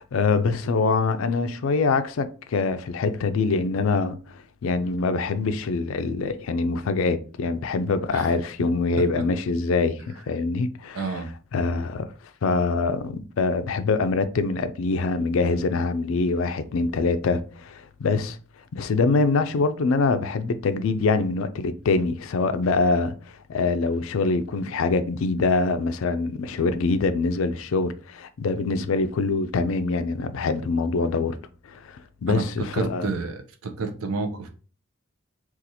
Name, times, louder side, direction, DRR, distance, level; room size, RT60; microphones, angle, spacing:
voice 1, 0.0-11.2 11.5-12.1 12.4-18.4 18.7-23.2 23.5-31.4 31.6-33.1, left 4 dB, 70° left, 0.4 m, -24 dB
voice 2, 10.9-11.3 32.3-32.4 32.7-34.5, right 4 dB, 90° right, 0.6 m, -29 dB
4.1 x 2.4 x 2.7 m
head